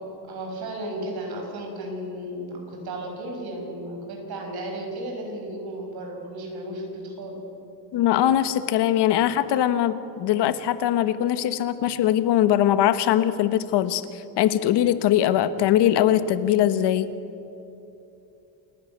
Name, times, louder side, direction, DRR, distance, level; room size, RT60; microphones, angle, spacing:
voice 1, 0.3-7.3 9.1-9.3, right 1 dB, 65° right, 1 dB, 6.2 m, -34 dB
voice 2, 7.9-17.1, left 11 dB, 85° left, 13 dB, 1.2 m, -21 dB
28.0 x 11.5 x 8.6 m, 2.9 s
cardioid pair, 135°, 40 cm